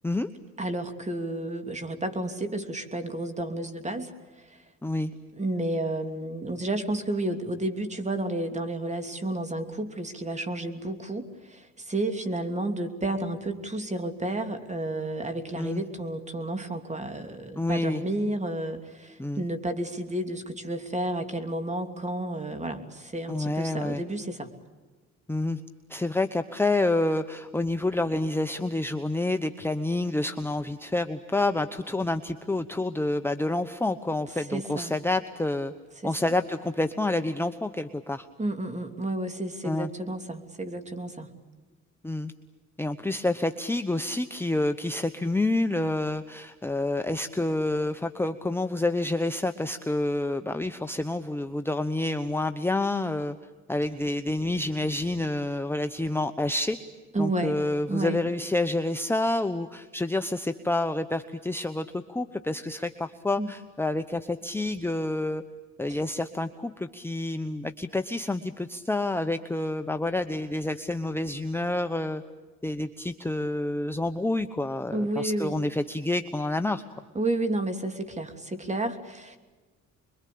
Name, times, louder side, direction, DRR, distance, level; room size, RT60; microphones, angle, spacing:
voice 1, 0.6-4.1 4.5-4.6 5.4-24.5 34.5-35.0 36.0-36.3 38.4-41.3 57.1-57.6 57.9-58.2 63.4-63.5 65.9-66.0 74.9-75.6 77.1-79.4, right 1 dB, 25° right, 7 dB, 2.9 m, -31 dB
voice 2, 17.6-18.0 19.2-19.4 23.3-24.0 25.3-25.6 25.9-35.7 36.0-38.3 39.6-39.9 42.0-42.3 42.8-53.4 53.7-56.8 57.2-65.4 65.8-72.2 72.6-76.8, left 2 dB, 10° left, 7 dB, 1.0 m, -28 dB
26.0 x 23.0 x 8.6 m, 1.3 s
cardioid pair, 90°, 30 cm